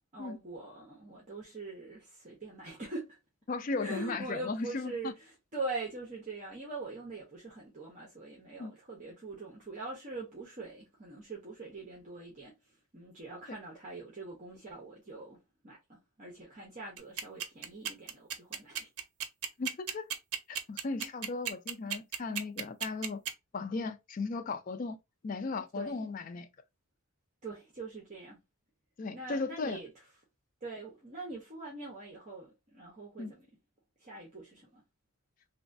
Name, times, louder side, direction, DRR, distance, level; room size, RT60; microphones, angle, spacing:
voice 1, 0.1-3.2 3.8-12.5 12.9-15.4 15.6-18.9 25.7-25.9 27.4-28.4 29.1-29.9 30.6-33.5 34.0-34.8, right 3 dB, 35° right, 0.8 m, -43 dB
voice 2, 3.5-5.1 8.6-8.7 13.5-13.6 19.6-20.1 20.5-23.2 23.5-25.0 25.2-26.5 29.0-29.8 33.2-33.3, left 3 dB, 35° left, 0.3 m, -36 dB
sound 1, 17.0-23.3, right 8 dB, 90° right, 0.5 m, -34 dB
3.0 x 2.2 x 2.5 m
head